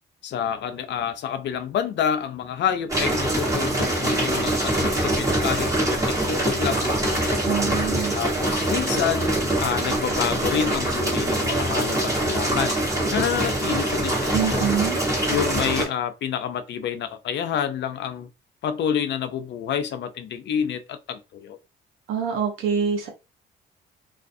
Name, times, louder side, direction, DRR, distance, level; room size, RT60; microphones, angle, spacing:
voice 1, 0.2-7.4 8.1-12.8 13.1-14.7 15.3-18.3 18.6-21.6, left 8 dB, 65° left, 0.5 m, -28 dB
sound 1, 2.9-15.8, right 1 dB, 15° right, 1.2 m, -24 dB
voice 2, 7.4-8.2 14.3-15.0 22.1-23.1, right 7 dB, 90° right, 0.8 m, -25 dB
2.4 x 2.3 x 2.5 m
cardioid pair, 90°, 20 cm